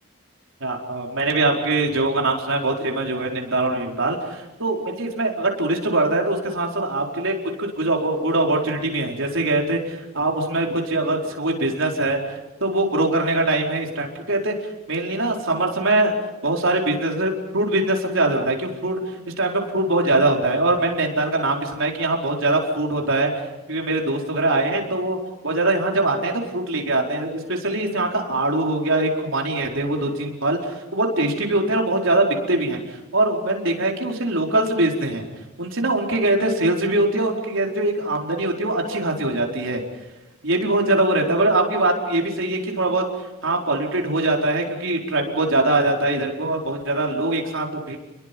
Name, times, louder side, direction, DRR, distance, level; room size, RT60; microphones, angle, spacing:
voice 1, 0.6-12.2 12.6-14.6 14.9-16.1 16.4-19.0 19.4-23.3 23.7-25.2 25.4-35.2 35.6-39.8 40.4-43.0 43.4-48.0, right 2 dB, 60° right, 1 dB, 4.7 m, -22 dB
30.0 x 22.0 x 5.5 m, 1.1 s
head